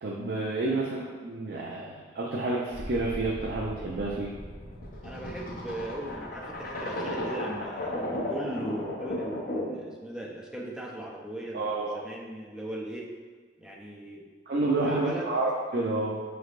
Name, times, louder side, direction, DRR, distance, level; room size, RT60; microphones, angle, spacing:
voice 1, 0.0-4.3 11.5-12.0 14.5-16.2, right 2 dB, 60° right, -3 dB, 0.5 m, -29 dB
sound 1, 2.7-9.9, left 1 dB, 50° left, 0.6 m, -35 dB
voice 2, 5.0-13.1 13.6-14.3 14.6-15.3, right 1 dB, 5° right, -2 dB, 0.5 m, -38 dB
5.1 x 3.2 x 2.4 m, 1.5 s
head